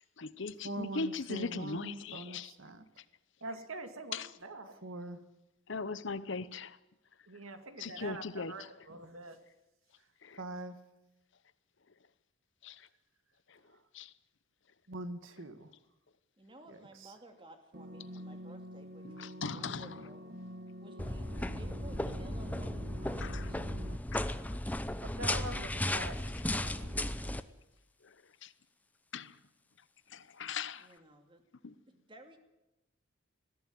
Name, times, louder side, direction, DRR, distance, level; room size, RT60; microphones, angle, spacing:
voice 1, 0.0-2.5 4.1-4.3 5.7-6.8 7.8-8.9 10.2-10.4 12.6-12.9 13.5-13.6 13.9-14.1 19.0-20.1 23.2-23.5 24.1-24.4 28.0-28.2 28.4-28.5 29.1-29.4 30.1-30.9 31.6-31.8, left 4 dB, 60° left, 0.8 m, -40 dB
voice 2, 0.6-2.8 4.8-5.2 10.4-10.8 14.9-15.7 16.7-17.1, right 2 dB, 70° right, 1.8 m, -43 dB
voice 3, 3.4-4.7 7.3-9.4 25.0-27.0 27.2-27.3, right 2 dB, 85° right, 2.2 m, -45 dB
voice 4, 16.4-20.2 20.8-23.6 30.8-31.4 31.9-32.4, right 1 dB, 25° right, 2.5 m, -56 dB
sound 1, 17.7-24.0, equal, 50° right, 1.4 m, -47 dB
sound 2, 21.0-27.4, left 1 dB, 10° left, 0.7 m, -35 dB
20.5 x 15.0 x 9.5 m
head